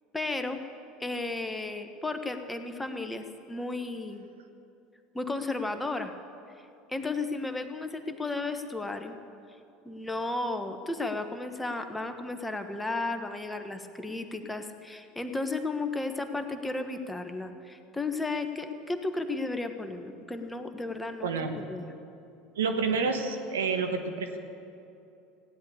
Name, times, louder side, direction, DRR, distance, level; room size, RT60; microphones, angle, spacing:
voice 1, 0.1-0.6 1.0-4.3 5.1-6.1 6.9-9.2 9.8-21.9, left 3 dB, 10° left, 7 dB, 1.3 m, -34 dB
voice 2, 21.2-21.5 22.5-24.4, right 4 dB, 80° right, 5 dB, 1.3 m, -29 dB
16.0 x 10.5 x 8.5 m, 2.7 s
hypercardioid pair, 75°, 0 cm